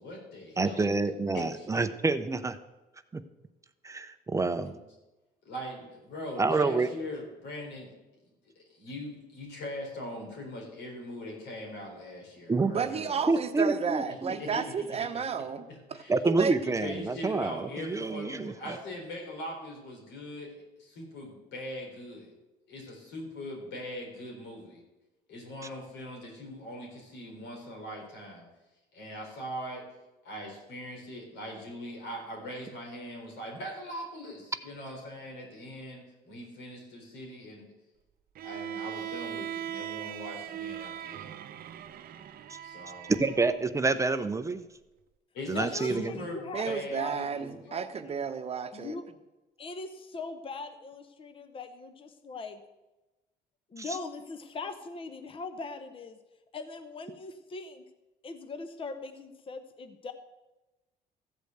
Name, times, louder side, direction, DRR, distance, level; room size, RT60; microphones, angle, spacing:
voice 1, 0.0-0.9 1.3-1.7 4.6-4.8 5.4-7.9 8.2-13.3 14.1-15.1 15.7-16.2 16.6-22.3 22.7-24.8 25.3-28.5 28.9-29.9 30.2-37.7 38.4-41.3 42.6-43.1 45.3-47.8, left 1 dB, 90° left, -1 dB, 4.1 m, -41 dB
voice 2, 0.6-2.6 3.1-3.2 3.8-4.8 6.4-6.9 12.5-12.7 13.3-14.3 16.1-18.8 43.1-44.6 45.5-46.0 53.8-53.9, right 3 dB, 20° right, 10 dB, 0.6 m, -28 dB
voice 3, 12.7-16.5 46.5-48.9, right 6 dB, 35° right, 8 dB, 0.9 m, -32 dB
Bowed string instrument, 38.3-43.6, right 10 dB, 60° right, 0.7 m, -39 dB
voice 4, 45.5-46.7 46.9-47.8 48.7-49.0 49.6-52.6 53.7-56.2 56.5-57.8 58.2-60.1, left 3 dB, 30° left, 9 dB, 0.9 m, -40 dB
14.5 x 5.1 x 7.9 m, 1.1 s
cardioid pair, 110°, 17 cm